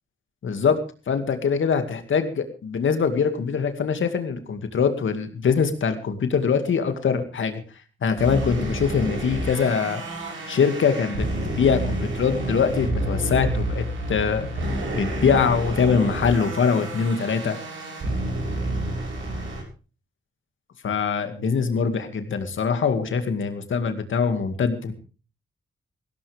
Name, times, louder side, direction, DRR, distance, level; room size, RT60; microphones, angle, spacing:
voice 1, 0.4-0.8 1.1-7.6 8.0-10.0 10.5-14.5 14.9-17.6 20.8-24.9, left 6 dB, 80° left, 8 dB, 2.3 m, -23 dB
sound 1, 8.2-19.6, right 1 dB, 90° right, 7.9 m, -29 dB
17.5 x 17.0 x 3.5 m, 0.35 s
cardioid pair, 55°, 20 cm